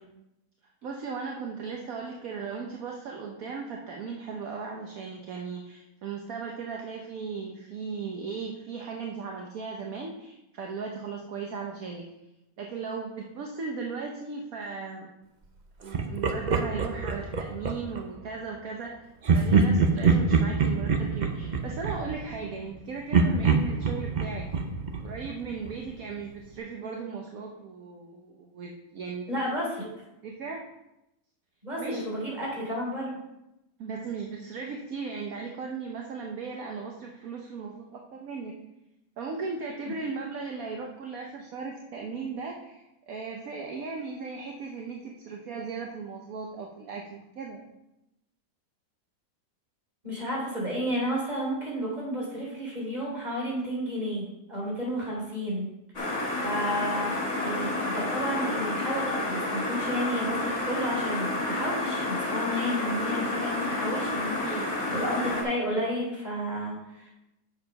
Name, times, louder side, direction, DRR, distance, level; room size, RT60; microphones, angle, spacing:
voice 1, 0.8-12.0 12.6-15.1 15.8-19.0 19.3-24.5 25.0-29.4 30.2-30.6 31.8-32.1 33.8-37.9 38.2-38.5 39.2-47.1 47.3-47.6 64.4-64.7, right 5 dB, 65° right, 1 dB, 1.3 m, -37 dB
Laughter, 15.9-18.1 19.2-22.7 23.1-25.9, right 4 dB, 45° right, 0.6 m, -25 dB
voice 2, 29.3-29.9 31.6-33.2 50.0-55.7 56.0-64.6 64.9-67.1, equal, 25° right, -4 dB, 3.5 m, -32 dB
sound 1, 55.9-65.4, left 2 dB, 40° left, 2.6 m, -30 dB
7.8 x 6.7 x 5.2 m, 0.90 s
omnidirectional pair, 1.7 m